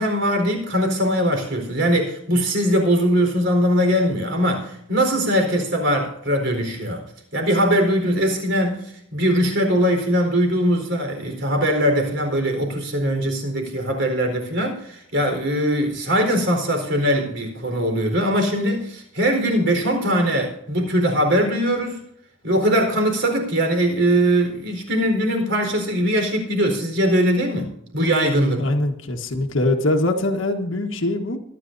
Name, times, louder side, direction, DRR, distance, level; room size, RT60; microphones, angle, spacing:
voice 1, 0.0-7.0 7.3-8.8 9.1-22.0 22.4-28.7, equal, 65° right, 3 dB, 4.2 m, -21 dB
voice 2, 28.6-31.4, left 2 dB, 75° left, 2 dB, 1.4 m, -22 dB
23.5 x 10.0 x 2.7 m, 0.73 s
head